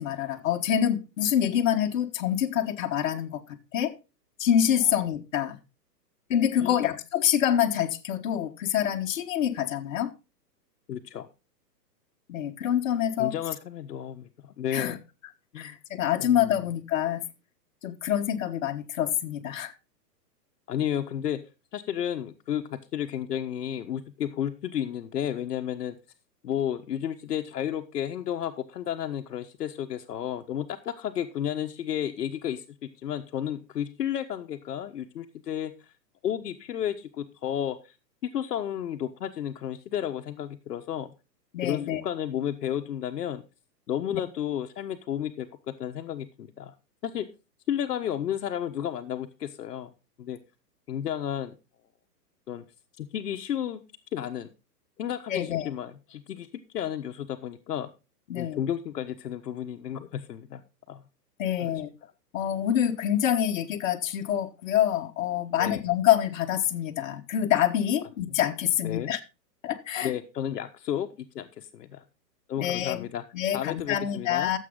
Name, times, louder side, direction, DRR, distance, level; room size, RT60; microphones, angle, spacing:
voice 1, 0.0-3.9 4.4-5.6 6.3-10.1 12.3-13.3 14.7-15.0 15.6-17.2 17.8-19.7 41.5-42.0 44.1-44.2 55.3-55.7 58.3-58.6 61.4-61.9 62.3-69.2 69.6-70.1 72.6-73.0 73.3-74.6, left 10 dB, 50° left, 1.5 m, -26 dB
voice 2, 10.9-11.3 13.2-15.0 15.5-15.7 16.2-16.6 20.7-21.4 21.7-26.0 26.4-35.7 36.2-37.8 38.2-41.1 41.6-43.4 43.9-46.7 47.0-47.3 47.7-49.9 50.2-50.4 50.9-51.5 52.5-52.6 53.0-53.8 54.1-54.5 55.0-56.5 56.7-57.9 58.3-60.6 60.9-61.0 61.6-61.7 62.0-62.1 65.6-65.8 68.8-69.1 70.0-72.0 72.5-73.2 73.5-74.5, left 10 dB, 70° left, 1.3 m, -32 dB
13.5 x 7.7 x 3.8 m
hypercardioid pair, 160°, 50 cm